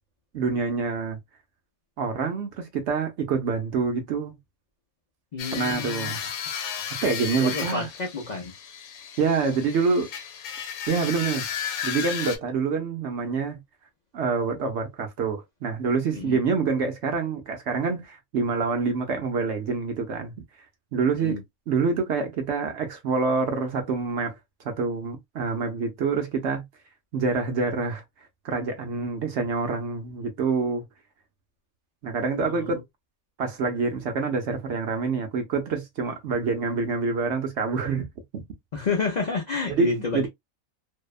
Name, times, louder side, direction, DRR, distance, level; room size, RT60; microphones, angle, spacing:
voice 1, 0.3-1.2 2.0-4.4 5.5-6.2 7.0-7.9 9.2-10.1 10.9-11.4 11.8-13.6 14.1-20.3 20.9-21.4 21.7-24.4 24.6-26.6 27.1-28.0 28.4-30.8 32.0-32.8 33.4-38.1 38.3-38.4 39.7-40.3, right 4 dB, 65° right, 0.8 m, -26 dB
voice 2, 5.3-6.3 7.4-8.5 16.1-16.4 21.2-21.4 32.5-32.7 38.7-40.3, left 4 dB, 65° left, 0.4 m, -29 dB
sound 1, 5.4-12.4, left 8 dB, 85° left, 1.1 m, -34 dB
2.7 x 2.1 x 2.3 m
omnidirectional pair, 1.5 m